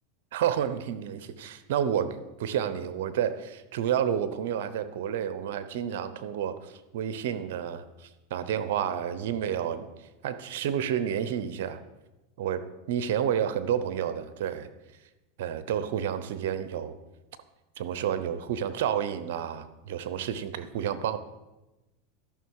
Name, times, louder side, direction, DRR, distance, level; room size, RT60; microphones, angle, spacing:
voice 1, 0.3-7.8 8.3-9.9 10.2-11.8 12.4-12.6 12.9-14.7 15.4-16.9 17.8-21.2, right 9 dB, 75° right, 12 dB, 0.8 m, -30 dB
12.5 x 6.0 x 4.8 m, 1.0 s
supercardioid pair, 120°, 0 cm